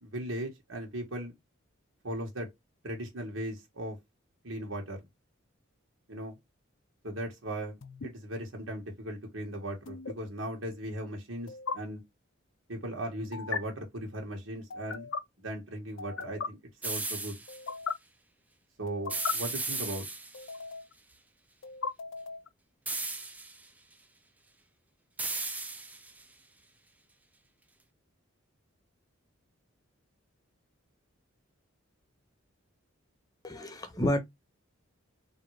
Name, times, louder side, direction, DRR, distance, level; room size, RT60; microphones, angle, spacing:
voice 1, 0.0-1.3 2.0-2.5 2.8-4.0 4.4-5.0 6.1-6.4 7.0-7.8 8.0-12.0 12.7-15.1 15.4-16.6 16.8-17.4 18.8-20.1, right 1 dB, 75° right, 1.4 m, -38 dB
sound 1, 7.8-8.1 9.8-10.1 11.5-11.7 13.3-13.6 14.7-15.2 16.0-16.5 17.5-17.9 18.9-19.3 20.3-20.9 21.6-22.5, left 5 dB, 65° left, 0.5 m, -36 dB
sound 2, 16.8-17.6 19.1-20.5 22.9-23.6 25.2-26.2, right 3 dB, 10° right, 0.4 m, -36 dB
voice 2, 33.4-34.2, left 1 dB, 20° left, 0.8 m, -29 dB
3.7 x 2.7 x 4.7 m
head